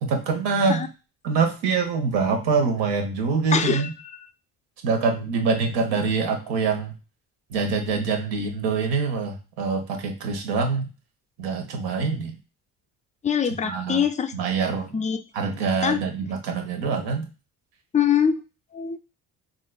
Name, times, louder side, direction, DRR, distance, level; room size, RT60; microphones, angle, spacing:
voice 1, 0.0-0.8 1.2-3.9 4.8-6.9 7.5-10.9 11.4-12.4 13.6-14.0 14.3-15.0 15.3-17.3, right 5 dB, 70° right, 4 dB, 1.0 m, -25 dB
voice 2, 3.5-3.8 13.2-14.3 14.9-15.2 15.8-16.0 17.9-18.4 18.7-19.0, left 7 dB, 20° left, 9 dB, 0.3 m, -23 dB
3.9 x 2.5 x 2.2 m, 0.31 s
hypercardioid pair, 55°, 45 cm